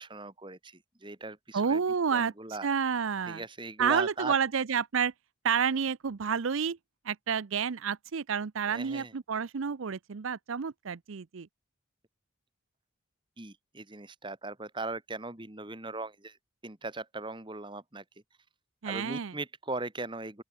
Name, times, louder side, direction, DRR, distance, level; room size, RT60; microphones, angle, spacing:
voice 1, 0.0-1.8 2.1-2.7 3.3-4.3 8.7-9.1 13.4-16.4 16.6-18.0 18.8-20.4, right 2 dB, 25° right, 1.6 m, -39 dB
voice 2, 1.5-2.3 2.6-3.4 3.8-5.1 5.4-6.8 7.0-11.5 18.8-19.3, right 6 dB, 75° right, 0.6 m, -29 dB
open air
head